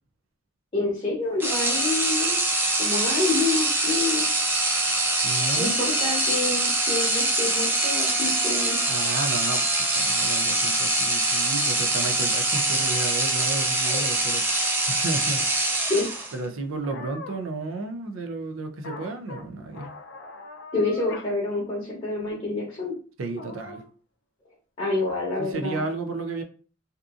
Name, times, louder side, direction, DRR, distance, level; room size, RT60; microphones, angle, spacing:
voice 1, 0.7-2.4 2.8-4.3 5.6-8.8 15.9-16.1 20.7-23.0 24.8-25.8, left 3 dB, 30° left, 0.8 m, -27 dB
sound 1, 1.4-16.4, right 2 dB, 10° right, 0.4 m, -24 dB
voice 2, 5.2-5.9 8.9-15.8 16.3-19.9 23.2-23.8 25.4-26.4, right 3 dB, 75° right, 0.5 m, -33 dB
sound 2, 13.8-14.1 16.8-17.4 18.8-19.4 19.7-21.3 21.7-21.8 23.4-23.9 25.1-25.5, left 3 dB, 60° left, 0.4 m, -40 dB
2.7 x 2.4 x 2.4 m
head